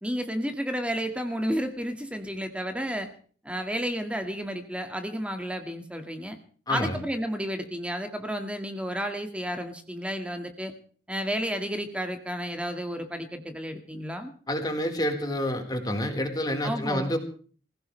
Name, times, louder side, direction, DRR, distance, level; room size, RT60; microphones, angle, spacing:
voice 1, 0.0-3.1 3.4-6.4 6.7-10.7 11.1-14.3 16.6-17.1, equal, 5° right, 6 dB, 2.0 m, -32 dB
voice 2, 6.7-7.0 14.5-17.2, left 1 dB, 25° left, 3 dB, 4.3 m, -28 dB
25.0 x 16.5 x 3.3 m, 0.43 s
head